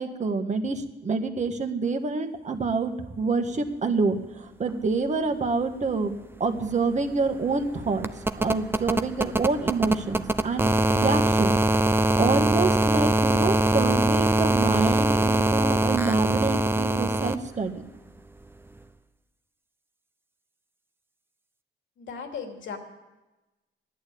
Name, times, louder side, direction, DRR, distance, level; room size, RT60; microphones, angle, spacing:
voice 1, 0.0-8.1 8.4-11.6 11.8-17.8, right 4 dB, 35° right, 5 dB, 1.7 m, -27 dB
sound 1, 6.1-6.2 6.4-17.3 18.8-18.9, right 2 dB, 10° right, 0.7 m, -23 dB
voice 2, 22.0-22.8, left 6 dB, 75° left, 3 dB, 2.8 m, -36 dB
15.0 x 11.0 x 8.6 m, 1.1 s
cardioid pair, 90°, 20 cm